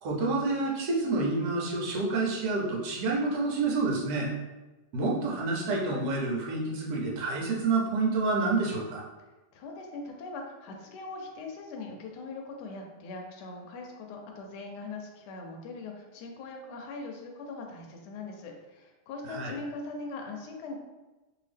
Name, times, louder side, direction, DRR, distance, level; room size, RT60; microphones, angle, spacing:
voice 1, 0.0-4.3 4.9-9.0 19.2-19.6, right 3 dB, 70° right, -2 dB, 1.2 m, -28 dB
voice 2, 9.5-20.8, left 3 dB, 80° left, 2 dB, 1.1 m, -41 dB
2.8 x 2.7 x 3.3 m, 1.1 s
omnidirectional pair, 1.8 m